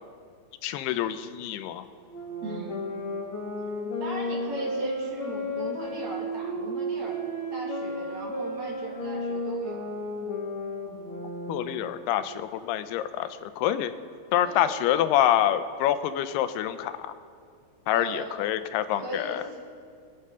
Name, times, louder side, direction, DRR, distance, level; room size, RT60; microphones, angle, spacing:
voice 1, 0.6-1.8 11.5-13.9 14.3-17.1 17.9-19.4, left 11 dB, 85° left, 11 dB, 2.7 m, -26 dB
sound 1, 2.1-12.1, equal, 35° left, 3.0 m, -33 dB
voice 2, 2.4-2.8 4.0-9.9 14.4-14.8 17.9-18.3 19.0-19.6, right 1 dB, 45° right, -3 dB, 3.5 m, -38 dB
24.0 x 8.6 x 5.6 m, 2.2 s
omnidirectional pair, 4.6 m